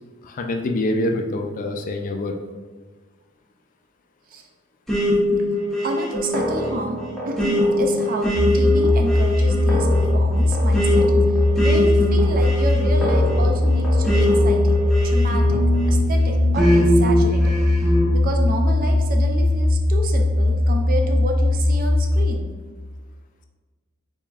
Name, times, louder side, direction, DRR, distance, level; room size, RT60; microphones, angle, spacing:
voice 1, 0.2-2.3, left 1 dB, 40° left, 4 dB, 0.3 m, -25 dB
sound 1, 4.9-15.9 16.6-18.1, left 1 dB, ahead, 0.8 m, -22 dB
voice 2, 5.8-15.6 15.9-17.5 18.1-22.5, right 2 dB, 45° right, 3 dB, 0.4 m, -29 dB
sound 2, 8.3-22.3, left 1 dB, 75° right, 1.2 m, -19 dB
sound 3, 15.4-18.6, right 5 dB, 25° left, 1.3 m, -32 dB
3.9 x 3.6 x 2.4 m, 1.3 s
head